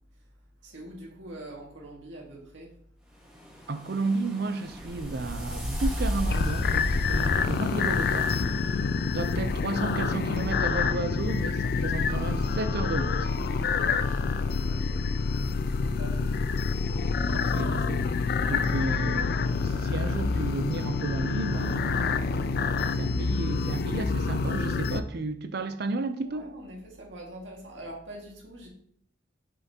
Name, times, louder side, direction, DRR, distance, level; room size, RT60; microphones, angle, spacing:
voice 1, 0.6-2.7 13.8-14.2 14.7-15.1 15.8-16.2 26.2-28.7, right 1 dB, 75° right, 2.0 m, -44 dB
sound 1, 3.3-8.6, equal, 5° right, 1.6 m, -33 dB
voice 2, 3.7-8.3 8.6-8.8 9.1-13.3 16.2-16.3 17.3-18.1 18.5-22.1 22.9-26.5, right 3 dB, 55° right, 0.6 m, -33 dB
sound 2, 6.3-25.0, left 4 dB, 55° left, 0.4 m, -27 dB
7.5 x 5.7 x 2.9 m
head